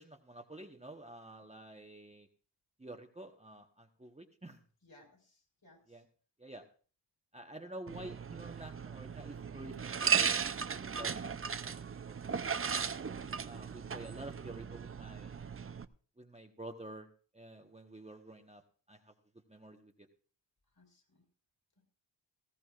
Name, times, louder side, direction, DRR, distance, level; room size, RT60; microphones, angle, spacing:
voice 1, 0.0-2.3 2.8-4.6 5.9-6.1 6.4-6.6 7.3-10.4 10.7-11.3 11.6-11.7 13.4-15.4 16.2-17.1 17.3-18.6 18.9-19.1 19.5-19.9, right 1 dB, 15° right, 3 dB, 1.0 m, -49 dB
voice 2, 4.8-6.0 20.8-21.2, left 1 dB, 50° left, 1 dB, 4.7 m, -63 dB
sound 1, 7.9-15.8, right 6 dB, 30° right, 0.5 m, -36 dB
18.5 x 15.0 x 2.4 m, 0.40 s
wide cardioid pair, 80°, 45 cm